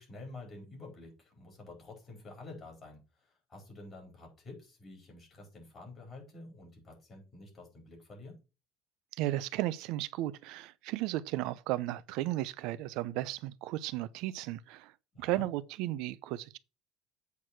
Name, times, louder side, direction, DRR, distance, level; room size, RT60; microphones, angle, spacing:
voice 1, 0.0-8.4 15.1-15.5, left 2 dB, 25° left, 4.4 m, -49 dB
voice 2, 9.2-14.9 15.2-16.6, right 15 dB, 70° right, 0.6 m, -34 dB
8.3 x 4.7 x 5.8 m
cardioid pair, 170°, 0 cm